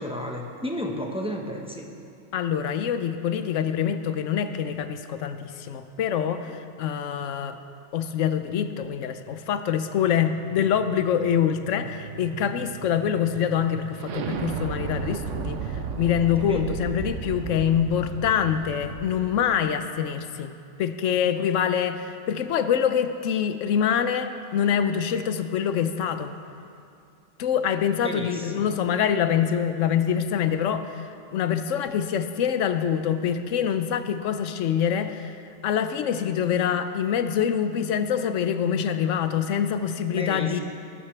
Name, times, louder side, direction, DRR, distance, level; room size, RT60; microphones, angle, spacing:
voice 1, 0.0-1.9 16.5-16.6 28.0-28.7 40.1-40.6, equal, 5° right, 1 dB, 1.0 m, -32 dB
voice 2, 2.3-7.6 7.9-26.4 27.4-35.4 35.6-40.6, left 8 dB, 85° left, 10 dB, 1.0 m, -25 dB
sound 1, 9.4-19.6, right 6 dB, 85° right, 1.1 m, -35 dB
19.5 x 12.5 x 3.3 m, 2.5 s
omnidirectional pair, 1.2 m